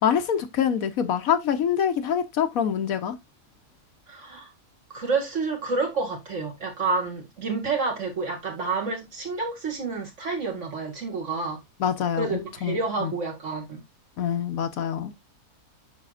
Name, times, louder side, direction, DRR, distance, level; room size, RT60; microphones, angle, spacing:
voice 1, 0.0-3.2 11.8-13.1 14.2-15.1, left 8 dB, 70° left, 1.2 m, -25 dB
voice 2, 4.1-4.5 4.9-11.6 12.2-13.8, right 4 dB, 50° right, 2.5 m, -29 dB
9.0 x 6.3 x 2.4 m
omnidirectional pair, 1.6 m